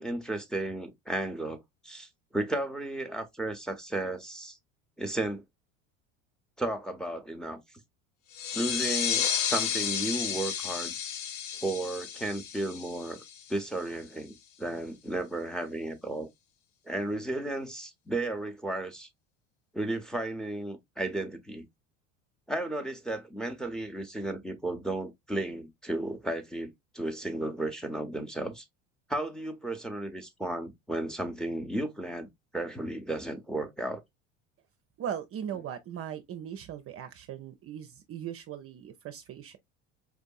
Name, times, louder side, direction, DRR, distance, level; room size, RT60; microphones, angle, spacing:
voice 1, 0.0-4.6 5.0-5.4 6.6-7.6 8.5-10.9 11.6-13.2 13.5-16.3 16.9-19.1 19.7-21.6 22.5-28.6 29.1-32.3 32.5-34.0, right 1 dB, ahead, 0.7 m, -34 dB
sound 1, 8.3-13.7, left 8 dB, 80° left, 0.7 m, -32 dB
voice 2, 35.0-39.6, right 9 dB, 35° right, 0.5 m, -39 dB
4.6 x 2.5 x 2.3 m
hypercardioid pair, 75°, 39 cm